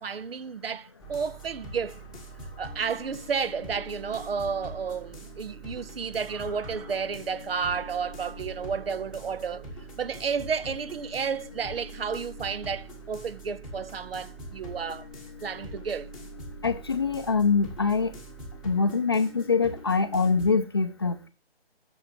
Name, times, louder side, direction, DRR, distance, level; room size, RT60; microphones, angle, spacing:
voice 1, 0.0-2.0 2.6-9.7 10.0-15.1 15.4-16.1, right 6 dB, 70° right, 0.7 m, -32 dB
sound 1, 1.0-20.6, right 1 dB, ahead, 1.2 m, -43 dB
sound 2, 6.3-7.1 7.7-9.8 11.0-11.3, right 3 dB, 35° right, 4.0 m, -52 dB
voice 2, 16.6-18.1 18.6-21.3, left 4 dB, 25° left, 0.5 m, -24 dB
8.6 x 6.4 x 7.5 m
hypercardioid pair, 165°, 31 cm